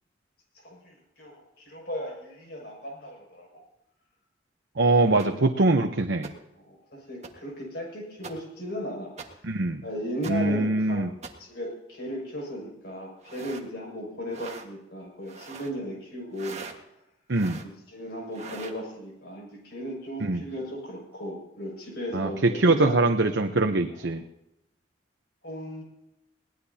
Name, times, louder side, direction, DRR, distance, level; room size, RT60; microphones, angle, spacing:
voice 1, 0.6-3.6 5.1-5.3 6.6-9.1 9.8-11.1 11.4-16.6 17.6-23.0 24.0-24.1 25.4-25.8, equal, 65° left, -1 dB, 6.5 m, -36 dB
voice 2, 4.8-6.3 9.4-9.8 10.3-11.1 17.3-17.6 20.2-20.4 22.1-24.2, right 2 dB, 85° right, 4 dB, 0.9 m, -23 dB
sound 1, 5.2-5.3 6.2-6.3 7.2-7.3 8.2-8.3 9.2-9.3 10.2-10.3 11.2-11.3 13.2-13.7 14.3-14.7 15.2-15.7 16.3-16.7 17.3-17.7 18.3-18.8, right 4 dB, 40° right, 1.6 m, -41 dB
21.5 x 18.5 x 2.8 m, 0.91 s
head